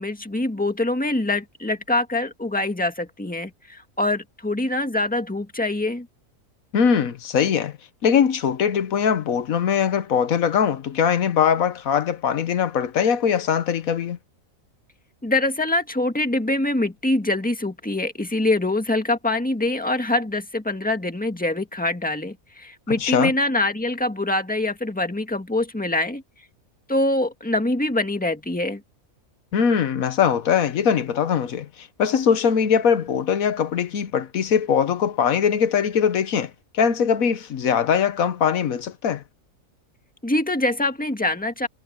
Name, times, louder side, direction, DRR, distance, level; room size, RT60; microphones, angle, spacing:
voice 1, 0.0-6.1 15.2-26.2 26.9-28.8 40.2-41.7, left 2 dB, 5° left, 1.7 m, -24 dB
voice 2, 6.7-7.8 8.0-14.2 23.0-23.3 29.5-39.2, left 7 dB, 85° left, 1.4 m, -21 dB
omnidirectional pair, 1.4 m